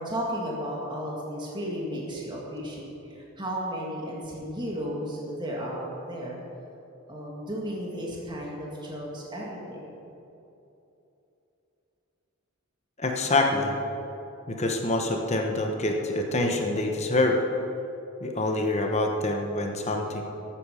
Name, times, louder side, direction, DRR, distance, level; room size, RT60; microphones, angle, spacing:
voice 1, 0.0-6.4 7.1-10.0, equal, 20° right, -3 dB, 2.0 m, -34 dB
voice 2, 13.0-13.7 14.5-17.4 18.2-20.2, left 2 dB, 30° left, 2 dB, 1.1 m, -26 dB
13.5 x 8.8 x 6.5 m, 2.9 s
head